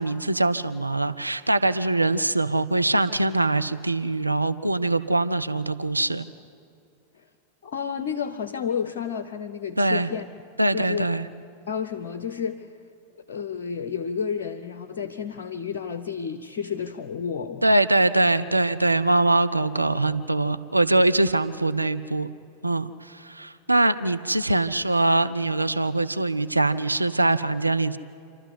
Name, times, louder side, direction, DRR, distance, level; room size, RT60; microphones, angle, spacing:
voice 1, 0.0-6.3 9.8-10.1 10.6-11.3 17.6-22.3 22.6-28.0, right 2 dB, 85° right, 11 dB, 0.5 m, -23 dB
voice 2, 7.6-10.3 10.7-11.1 11.7-12.7 13.3-17.7, left 7 dB, 55° left, 10 dB, 0.7 m, -31 dB
27.5 x 12.5 x 8.0 m, 2.5 s
figure-of-eight pair, 90°, 0 cm